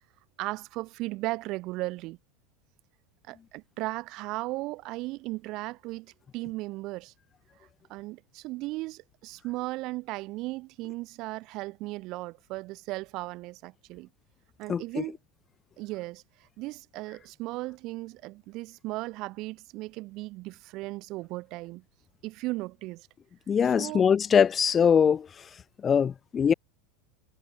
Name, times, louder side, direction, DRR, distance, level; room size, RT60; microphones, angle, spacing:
voice 1, 0.4-2.2 3.3-7.1 7.9-14.1 14.6-15.2 15.8-16.2 16.6-21.8 22.2-23.1 23.6-24.1, right 20 dB, 55° right, 7.6 m, -36 dB
voice 2, 23.5-25.2 25.8-26.5, left 7 dB, 25° left, 1.5 m, -22 dB
supercardioid pair, 115°, 0 cm